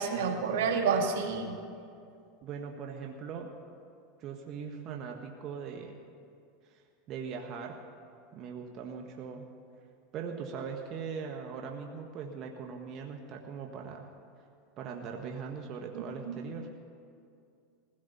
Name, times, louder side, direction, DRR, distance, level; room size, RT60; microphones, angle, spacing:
voice 1, 0.0-1.6 15.9-16.4, right 5 dB, 75° right, 3 dB, 1.9 m, -30 dB
voice 2, 2.4-3.5 4.2-6.0 6.6-7.8 8.3-9.5 10.1-14.1 14.8-16.7, right 6 dB, 45° right, 2 dB, 1.4 m, -40 dB
20.5 x 16.5 x 4.2 m, 2.4 s
hypercardioid pair, 110°, 0 cm